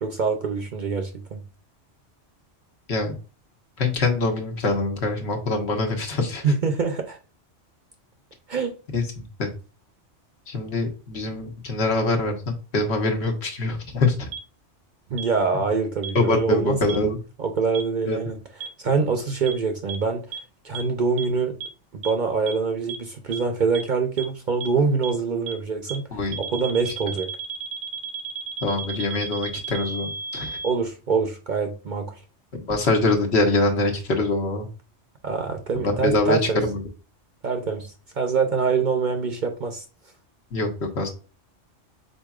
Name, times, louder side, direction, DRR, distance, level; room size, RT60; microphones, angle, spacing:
voice 1, 0.0-1.4 6.4-7.2 8.5-8.8 15.1-16.8 17.4-20.2 20.6-21.6 21.9-26.0 26.4-27.3 30.6-32.1 35.2-36.6 37.4-39.8, right 5 dB, 50° right, 0.6 m, -25 dB
voice 2, 3.8-6.4 8.9-9.0 9.4-9.5 10.5-14.3 16.1-17.2 18.0-18.4 26.1-26.4 28.6-30.6 32.5-34.7 35.7-36.8 40.5-41.1, left 2 dB, 65° left, 1.3 m, -24 dB
sound 1, 14.3-14.4 15.2-15.3 16.0-16.1 16.9-17.0 17.7-17.8 18.6-18.7 19.5-19.6 19.9-20.0 20.3-20.4 20.7-20.8 21.2-21.3 21.6-21.7 22.0-22.1 22.5-22.6 22.9-23.0 23.3-23.4 23.7-23.8 24.2-24.3 24.6-24.7 25.0-25.1 25.5-25.6 25.9-26.0 26.3-30.7, right 7 dB, 80° right, 0.9 m, -33 dB
5.0 x 4.1 x 2.3 m
omnidirectional pair, 1.2 m